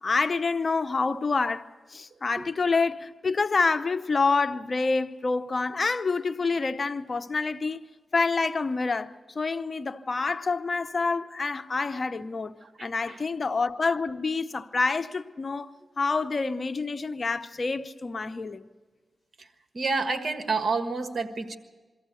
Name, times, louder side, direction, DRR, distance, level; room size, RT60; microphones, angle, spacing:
voice 1, 0.0-7.9 8.1-12.5 12.8-15.7 16.0-18.7, left 4 dB, 50° left, 0.7 m, -27 dB
voice 2, 12.6-13.2 19.4-19.5 19.7-21.6, right 4 dB, 55° right, 1.4 m, -29 dB
23.0 x 14.5 x 8.2 m
cardioid pair, 65°, 0 cm